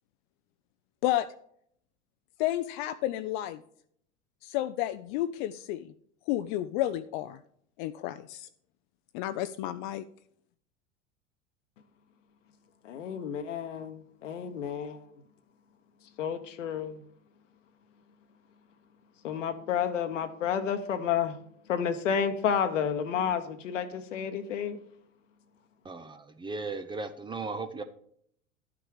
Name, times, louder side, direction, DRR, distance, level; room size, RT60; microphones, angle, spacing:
voice 1, 2.4-3.6 4.4-5.9 6.3-7.4 7.8-8.5 9.1-10.0, left 13 dB, 40° left, 12 dB, 0.4 m, -31 dB
voice 2, 12.8-15.1 16.2-17.0 19.2-21.3 21.7-24.8, left 8 dB, 70° left, 7 dB, 1.0 m, -30 dB
voice 3, 25.8-27.8, right 3 dB, 15° right, 8 dB, 0.5 m, -36 dB
11.5 x 6.0 x 4.8 m, 0.66 s
figure-of-eight pair, 85°, 39 cm